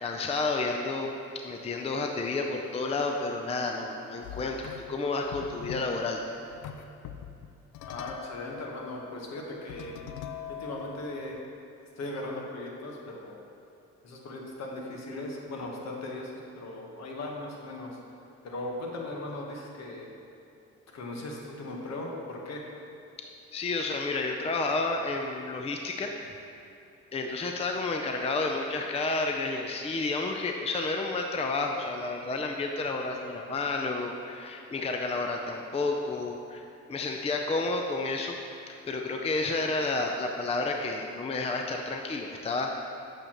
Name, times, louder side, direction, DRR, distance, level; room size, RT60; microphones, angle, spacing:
voice 1, 0.0-6.2 23.2-26.1 27.1-38.3 38.7-42.7, left 3 dB, 20° left, 2 dB, 0.5 m, -31 dB
sound 1, 4.2-5.1 5.3-6.0 6.5-11.4, left 9 dB, 80° left, 0.5 m, -43 dB
voice 2, 7.9-9.9 10.5-11.4 12.0-13.4 14.0-18.0 18.4-20.1 20.9-22.6, left 2 dB, 60° left, -1 dB, 1.3 m, -38 dB
8.4 x 6.7 x 3.0 m, 2.8 s
cardioid pair, 90°, 30 cm